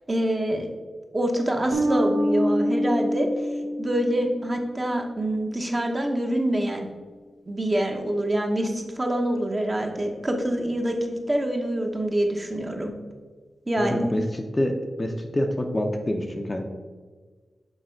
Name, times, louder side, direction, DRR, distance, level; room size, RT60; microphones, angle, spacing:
voice 1, 0.1-0.7 1.1-3.3 3.8-6.9 7.5-12.9 13.7-14.1, right 1 dB, 25° right, 3 dB, 0.9 m, -25 dB
Bass guitar, 1.7-4.7, equal, 60° right, 1.1 m, -26 dB
voice 2, 13.8-16.6, left 1 dB, 20° left, 4 dB, 0.6 m, -27 dB
6.5 x 4.6 x 4.5 m, 1.4 s
wide cardioid pair, 110°, 0 cm